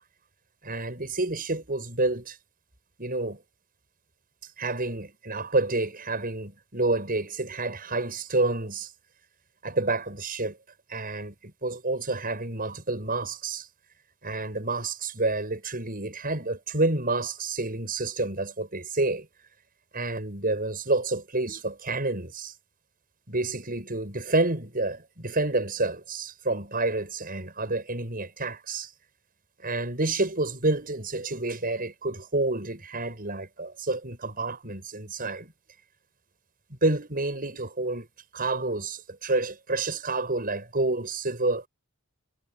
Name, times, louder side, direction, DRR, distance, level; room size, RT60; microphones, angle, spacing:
voice 1, 0.6-2.4 3.0-3.4 4.6-8.9 9.6-10.6 10.9-13.7 14.2-19.3 19.9-22.5 23.3-28.9 29.6-35.5 36.7-38.1 38.3-41.7, right 2 dB, 40° right, 7.8 m, -29 dB
head